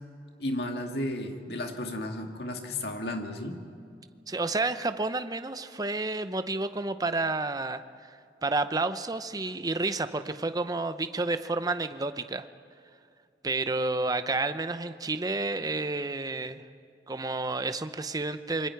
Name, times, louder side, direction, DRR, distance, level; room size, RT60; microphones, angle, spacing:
voice 1, 0.4-3.6, left 1 dB, 65° left, 3 dB, 2.2 m, -33 dB
voice 2, 4.3-12.5 13.4-16.6 17.1-18.7, right 3 dB, 20° right, 10 dB, 0.7 m, -30 dB
27.0 x 23.5 x 4.7 m, 2.4 s
head